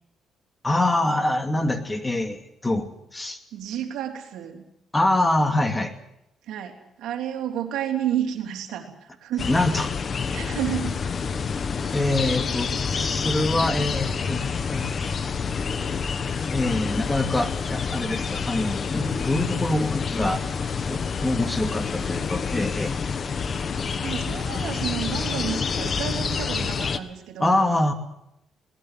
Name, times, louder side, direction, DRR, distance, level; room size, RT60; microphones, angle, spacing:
voice 1, 0.6-2.9 3.1-3.4 4.9-5.9 9.5-9.9 11.9-14.4 14.7-15.0 16.5-20.4 20.9-22.9 27.4-27.9, left 2 dB, 15° left, 6 dB, 2.5 m, -25 dB
voice 2, 3.5-4.6 6.5-6.7 7.0-9.5 10.3-11.0 24.0-27.7, right 10 dB, 85° right, 4 dB, 3.4 m, -31 dB
sound 1, 9.4-27.0, left 5 dB, 45° left, 1.4 m, -28 dB
22.0 x 19.0 x 7.8 m, 0.81 s
cardioid pair, 90°, 0 cm